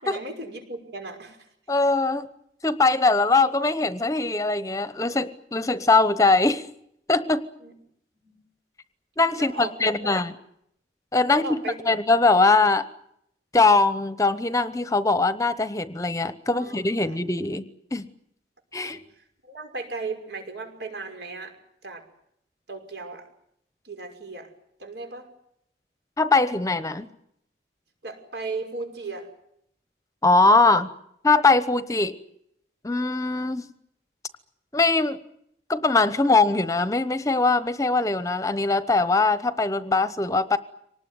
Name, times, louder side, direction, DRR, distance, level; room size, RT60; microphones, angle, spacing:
voice 1, 0.0-1.4 7.6-7.7 8.2-8.4 9.4-10.2 11.3-11.8 16.5-17.2 18.7-19.0 19.4-21.5 21.8-22.0 22.7-23.2 23.8-24.5 24.8-25.3 28.0-29.3, right 3 dB, 75° right, 5 dB, 5.8 m, -36 dB
voice 2, 1.7-2.3 2.6-6.6 7.1-7.4 9.2-10.3 11.1-11.4 11.9-12.9 13.5-17.6 17.9-18.0 18.7-19.0 26.2-27.1 30.2-30.9 31.2-32.2 32.8-33.7 34.7-35.2 35.7-40.6, left 3 dB, 20° left, 13 dB, 0.9 m, -21 dB
25.0 x 19.5 x 9.5 m, 0.74 s
head